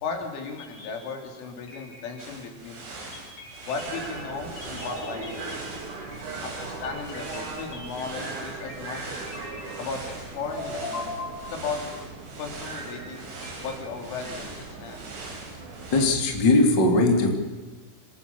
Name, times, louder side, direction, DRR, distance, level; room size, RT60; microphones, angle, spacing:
voice 1, 0.0-2.8 3.7-5.7 6.4-9.1 9.8-11.2 11.5-11.8 12.4-13.3 13.6-15.0, left 5 dB, 80° left, 3 dB, 5.7 m, -35 dB
sound 1, 0.6-1.4 1.7-2.5 3.1-10.2 10.5-12.0 12.7-14.3, left 2 dB, 50° left, 7.1 m, -41 dB
sound 2, 2.2-16.0, right 3 dB, 80° right, 7.4 m, -42 dB
sound 3, 3.8-16.1, right 3 dB, 45° right, 4.1 m, -39 dB
voice 2, 15.9-17.3, left 2 dB, 25° left, 3 dB, 2.9 m, -20 dB
26.0 x 18.5 x 7.1 m, 1.3 s
omnidirectional pair, 5.5 m